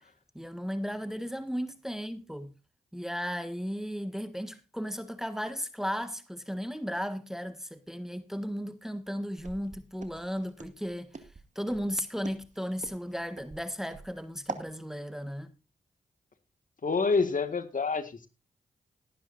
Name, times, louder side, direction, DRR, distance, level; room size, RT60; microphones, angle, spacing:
voice 1, 0.3-2.5 2.9-11.2 11.5-15.5, equal, ahead, 1.5 m, -35 dB
Walk footsteps, 9.4-14.7, right 4 dB, 45° right, 2.1 m, -44 dB
voice 2, 16.8-18.3, left 4 dB, 55° left, 1.9 m, -27 dB
18.5 x 9.9 x 2.6 m
supercardioid pair, 45°, 17 cm